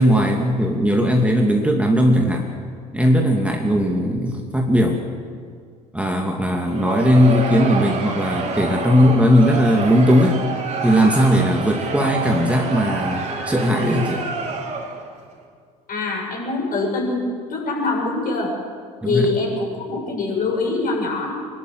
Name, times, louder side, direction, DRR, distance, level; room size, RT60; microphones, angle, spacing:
voice 1, 0.0-2.5 2.9-5.0 5.9-10.4 10.8-14.2 19.0-19.3, equal, 5° right, 1 dB, 2.7 m, -18 dB
Crowd, 6.6-15.1, right 4 dB, 40° right, 5.2 m, -28 dB
voice 2, 15.9-18.5 19.1-21.3, left 3 dB, 45° left, -1 dB, 7.7 m, -24 dB
24.0 x 12.0 x 9.4 m, 2.1 s
hypercardioid pair, 65°, 20 cm